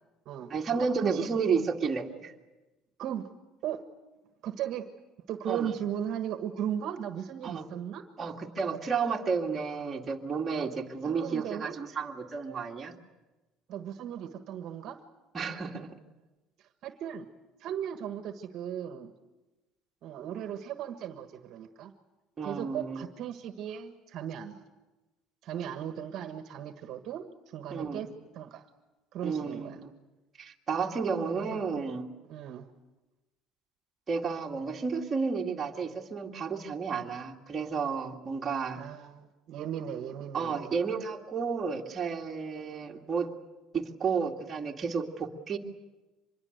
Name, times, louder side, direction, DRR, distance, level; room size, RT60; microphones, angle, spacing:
voice 1, 0.5-2.3 5.5-5.7 7.4-7.7 8.2-12.9 15.3-15.9 22.4-23.1 27.7-28.0 29.2-29.9 30.4-32.1 34.1-38.8 40.3-43.3 43.7-45.6, right 5 dB, 25° right, 0 dB, 2.2 m, -32 dB
voice 2, 3.0-3.3 3.6-3.8 4.4-4.8 5.3-8.0 11.0-11.8 13.7-15.0 16.8-17.3 17.6-19.1 20.0-21.9 22.4-24.6 25.4-28.1 28.3-28.6 29.1-29.8 31.3-31.6 32.3-32.7 38.8-40.7, right 9 dB, 55° right, 8 dB, 1.5 m, -37 dB
25.5 x 22.0 x 8.0 m, 1.1 s
cardioid pair, 140°, 0 cm